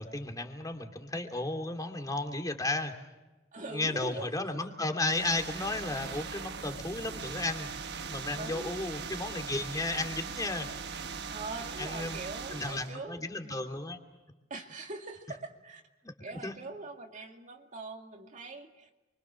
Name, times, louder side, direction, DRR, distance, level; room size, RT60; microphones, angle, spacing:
voice 1, 0.0-2.9 3.7-7.7 8.1-10.7 11.8-12.2 12.5-14.0 16.0-16.1 16.4-16.5, left 2 dB, 20° left, 4 dB, 2.7 m, -34 dB
voice 2, 3.5-4.3 8.3-8.7 11.3-13.2 14.5-15.8 16.2-18.9, right 2 dB, 40° right, 2 dB, 2.2 m, -42 dB
sound 1, 5.0-12.9, right 5 dB, 60° right, 1.3 m, -40 dB
29.5 x 24.5 x 6.4 m, 1.1 s
head